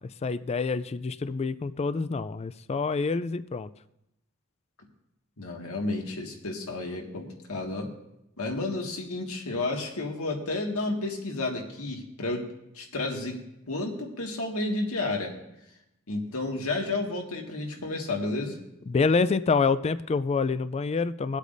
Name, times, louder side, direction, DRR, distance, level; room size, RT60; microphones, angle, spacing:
voice 1, 0.2-3.7 18.9-21.4, left 4 dB, 30° left, 14 dB, 0.3 m, -27 dB
voice 2, 5.4-7.9 8.4-12.4 12.7-13.4 13.7-15.3 16.1-18.6, left 2 dB, 80° left, 1 dB, 1.9 m, -31 dB
23.5 x 8.2 x 2.6 m, 0.85 s
head